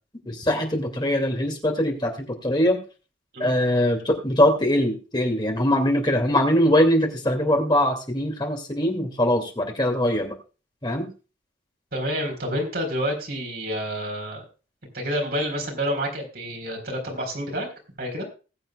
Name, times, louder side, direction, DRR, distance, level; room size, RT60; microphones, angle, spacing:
voice 1, 0.3-2.8 3.4-10.4 10.8-11.1, left 1 dB, 25° left, 3 dB, 2.5 m, -22 dB
voice 2, 11.9-14.4 14.9-17.7 18.0-18.3, equal, 55° right, 2 dB, 4.3 m, -28 dB
20.0 x 7.9 x 2.4 m, 0.33 s
head